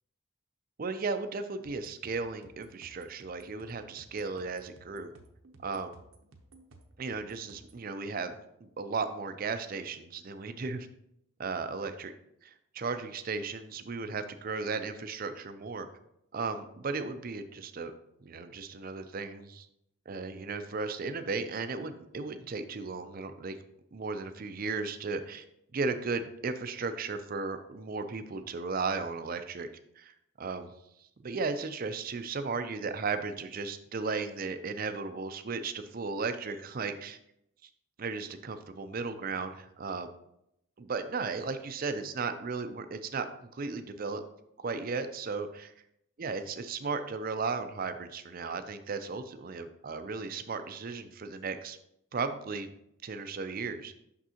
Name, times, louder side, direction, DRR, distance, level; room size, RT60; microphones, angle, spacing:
voice 1, 0.8-5.1 5.6-5.9 7.0-8.4 8.6-10.9 11.4-12.1 12.4-15.9 16.3-17.9 18.2-19.7 20.1-23.6 23.9-25.4 25.7-29.7 30.0-30.1 30.4-30.7 31.2-37.2 38.0-40.1 40.8-43.3 43.5-44.2 44.6-45.7 46.2-51.8 52.1-52.7 53.0-54.0, right 4 dB, 40° right, 9 dB, 0.4 m, -35 dB
sound 1, 1.6-7.8, right 2 dB, 70° right, 0.7 m, -57 dB
6.1 x 6.0 x 2.8 m, 0.79 s
head